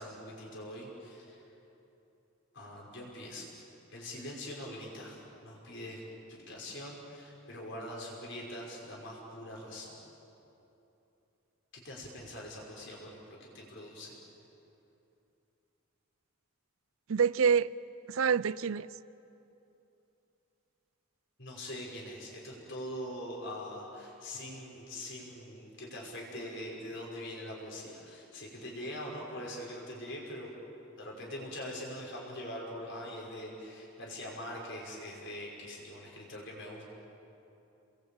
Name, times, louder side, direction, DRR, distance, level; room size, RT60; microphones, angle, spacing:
voice 1, 0.0-1.4 2.5-3.5 3.9-6.0 6.3-10.0 11.7-14.2 21.4-30.5 31.0-36.8, left 1 dB, 55° left, 5.8 m, -43 dB
voice 2, 17.1-17.7 18.1-18.9, right 6 dB, 70° right, 0.5 m, -26 dB
29.5 x 22.0 x 8.9 m
head